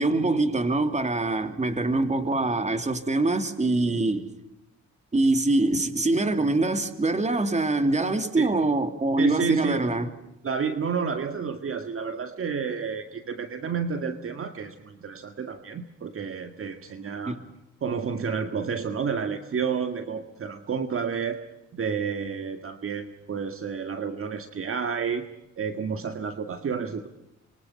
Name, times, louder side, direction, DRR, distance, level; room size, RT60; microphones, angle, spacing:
voice 1, 0.0-4.3 5.1-10.1 17.3-17.5, right 2 dB, 25° right, 2.8 m, -24 dB
voice 2, 9.2-9.9 10.4-17.4 17.8-21.4 21.7-25.3 25.6-27.1, right 6 dB, 45° right, 2.0 m, -30 dB
27.0 x 24.0 x 5.7 m
cardioid pair, 90°, 30 cm